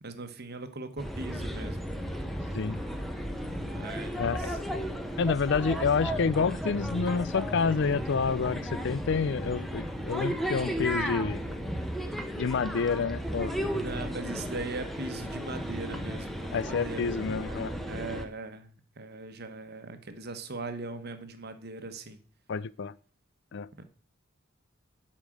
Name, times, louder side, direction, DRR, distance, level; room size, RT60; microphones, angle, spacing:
voice 1, 0.0-1.8 3.6-4.6 13.7-22.2 23.8-23.9, right 3 dB, 55° right, 1.2 m, -40 dB
sound 1, 1.0-18.2, equal, ahead, 1.0 m, -34 dB
voice 2, 4.2-4.5 5.2-11.4 12.4-13.5 16.5-17.7 22.5-22.9 23.5-23.7, left 5 dB, 60° left, 0.5 m, -28 dB
8.6 x 5.2 x 7.7 m
head